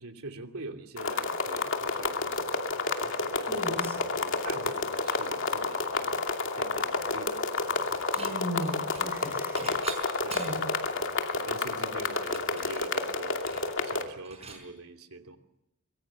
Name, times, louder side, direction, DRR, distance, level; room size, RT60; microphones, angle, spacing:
voice 1, 0.0-6.2 6.6-7.9 10.2-10.6 10.8-15.4, right 2 dB, 75° right, 5 dB, 2.8 m, -44 dB
sound 1, 1.0-14.0, left 3 dB, 60° left, 2.5 m, -30 dB
voice 2, 3.5-3.9 8.1-9.7 10.0-10.7, equal, 10° right, 4 dB, 6.9 m, -37 dB
Dishes pots and pans / Chink clink, 7.6-8.3 8.6-10.7 11.2-11.3 11.5-14.6, right 5 dB, 30° right, 5.5 m, -45 dB
25.0 x 22.5 x 7.1 m, 0.83 s
head